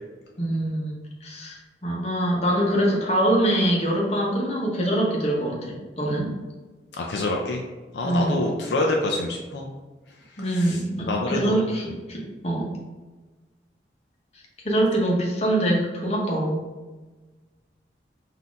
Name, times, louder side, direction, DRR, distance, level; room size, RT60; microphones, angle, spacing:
voice 1, 0.4-1.0 1.2-6.3 8.0-8.4 10.4-12.7 14.6-16.6, right 1 dB, 35° left, -2 dB, 1.0 m, -24 dB
voice 2, 6.9-7.6 7.9-9.7 10.3-11.6, left 2 dB, 70° left, 0 dB, 0.5 m, -27 dB
4.2 x 2.7 x 4.7 m, 1.3 s
head